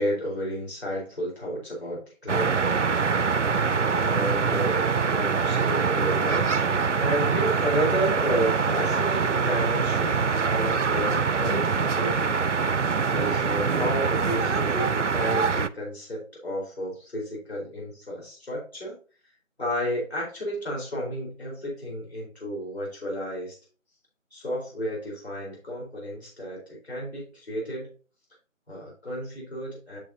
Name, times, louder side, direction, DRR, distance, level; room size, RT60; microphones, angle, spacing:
voice 1, 0.0-12.5 13.1-19.0 19.6-23.6 24.3-27.9 28.7-30.0, equal, 50° left, -3 dB, 4.2 m, -32 dB
sound 1, 2.3-15.7, right 5 dB, 65° right, 0.5 m, -24 dB
7.5 x 7.4 x 2.7 m, 0.35 s
figure-of-eight pair, 170°, 40 cm